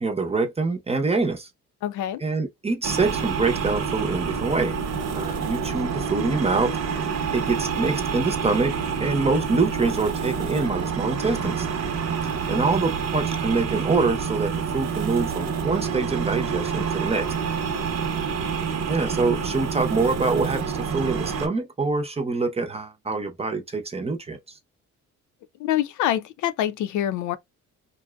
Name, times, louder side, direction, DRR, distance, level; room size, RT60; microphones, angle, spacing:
voice 1, 0.0-1.5 2.2-4.8 5.1-6.8 7.3-8.7 9.0-11.7 12.5-17.3 18.9-24.4, right 3 dB, 20° right, 0.7 m, -25 dB
voice 2, 1.8-2.2 17.7-17.8 25.6-27.4, left 12 dB, 75° left, 0.5 m, -25 dB
sound 1, 2.8-21.5, right 6 dB, 55° right, 0.8 m, -27 dB
2.6 x 2.2 x 2.2 m
cardioid pair, 90°, 30 cm